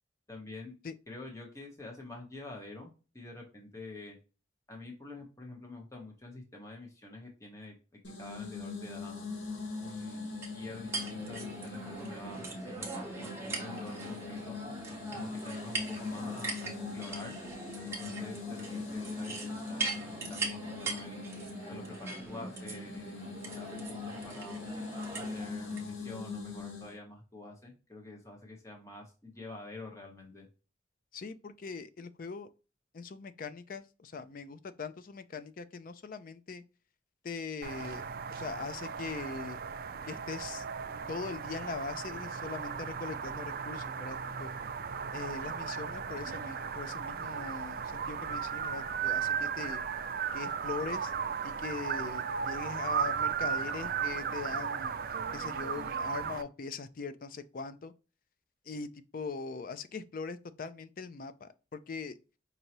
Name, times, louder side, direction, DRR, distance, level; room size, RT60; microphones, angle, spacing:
voice 1, 0.3-0.8 1.1-2.9 3.1-4.2 4.7-7.7 8.2-9.3 9.8-14.6 15.1-17.4 18.0-21.2 21.7-24.6 25.2-30.5, left 2 dB, 15° left, 1.0 m, -47 dB
sound 1, 8.0-27.0, left 3 dB, 65° left, 1.1 m, -41 dB
sound 2, 10.4-25.8, right 3 dB, 15° right, 0.8 m, -41 dB
voice 2, 31.1-32.5 32.9-36.6 37.2-39.6 40.0-40.6 41.1-44.5 45.1-49.8 50.3-51.1 51.4-54.9 55.3-57.9 58.7-62.2, left 4 dB, 45° left, 0.4 m, -41 dB
sound 3, 37.6-56.4, right 7 dB, 50° right, 0.4 m, -36 dB
5.3 x 2.7 x 2.9 m
head